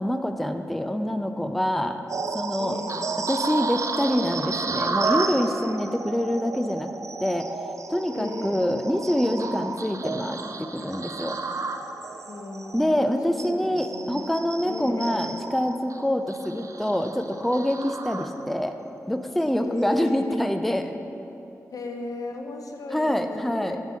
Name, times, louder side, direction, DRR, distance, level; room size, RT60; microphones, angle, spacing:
voice 1, 0.0-2.0 2.3-2.8 3.3-6.9 7.2-7.5 7.9-11.4 12.7-18.8 19.1-21.0 22.9-23.8, left 1 dB, ahead, 7 dB, 0.4 m, -26 dB
sound 1, 2.1-18.7 19.2-19.4 19.9-20.1, right 4 dB, 55° right, 0.4 m, -32 dB
voice 2, 2.6-3.1 8.2-8.7 12.3-14.3 14.6-15.4 19.6-20.5 21.7-23.8, left 2 dB, 70° left, 3 dB, 0.6 m, -36 dB
7.3 x 3.6 x 6.2 m, 2.9 s
cardioid pair, 40°, 6 cm